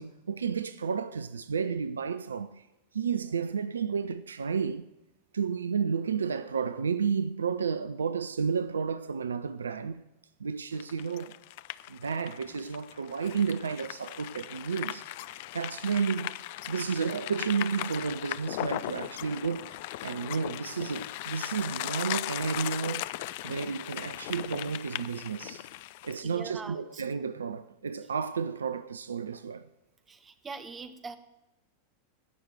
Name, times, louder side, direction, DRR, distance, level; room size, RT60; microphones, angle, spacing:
voice 1, 0.0-2.5 2.9-4.9 5.3-10.0 10.4-11.3 11.9-16.3 16.7-19.8 20.0-23.1 23.4-25.7 26.0-29.6, right 6 dB, 70° right, 0.4 m, -32 dB
sound 1, 10.8-26.2, left 16 dB, 50° left, 0.3 m, -38 dB
voice 2, 26.2-27.0 30.1-31.2, right 4 dB, 20° right, 1.0 m, -42 dB
17.0 x 6.4 x 6.4 m
figure-of-eight pair, 90°, 0 cm